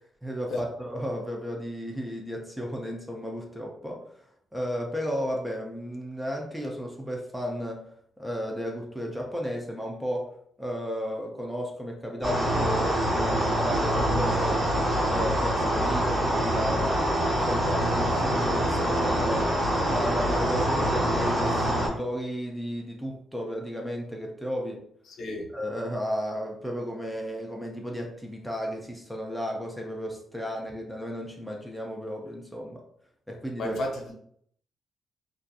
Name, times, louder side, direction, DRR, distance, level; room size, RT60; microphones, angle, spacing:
voice 1, 0.2-4.0 4.5-7.9 8.2-10.3 10.6-14.7 15.1-17.1 17.3-19.6 19.9-24.8 25.5-32.8 33.3-33.8, equal, ahead, 0 dB, 0.4 m, -33 dB
sound 1, 12.2-21.9, equal, 25° right, 1.0 m, -25 dB
voice 2, 25.1-25.5 33.6-34.1, left 1 dB, 65° left, 0 dB, 0.6 m, -32 dB
2.7 x 2.4 x 2.2 m, 0.67 s
cardioid pair, 155°, 0 cm